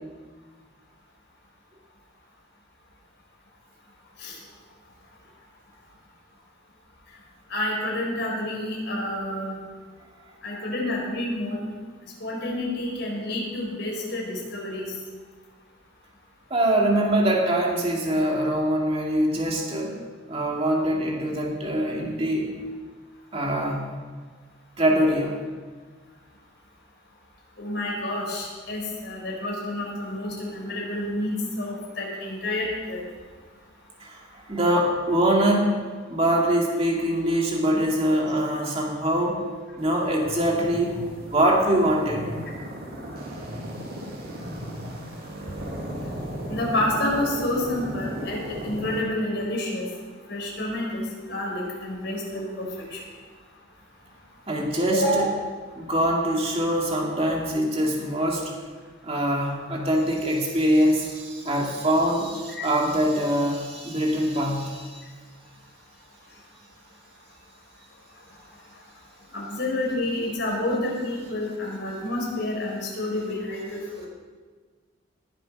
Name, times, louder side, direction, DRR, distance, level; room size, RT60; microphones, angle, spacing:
voice 1, 7.5-9.6 10.4-11.6 12.2-14.9 27.6-33.0 46.5-49.9 50.3-53.0 54.9-55.3 62.5-62.7 69.3-74.0, left 1 dB, 55° left, -2 dB, 4.5 m, -29 dB
voice 2, 16.5-19.9 20.3-22.5 23.3-23.8 24.8-25.4 34.0-34.2 34.5-35.7 36.1-39.5 39.8-41.0 41.2-42.3 54.5-55.2 55.8-58.5 59.0-64.9, right 1 dB, 30° right, -1 dB, 2.2 m, -23 dB
sound 1, 39.8-49.0, equal, 50° right, 2.3 m, -36 dB
19.5 x 7.8 x 5.4 m, 1.5 s
head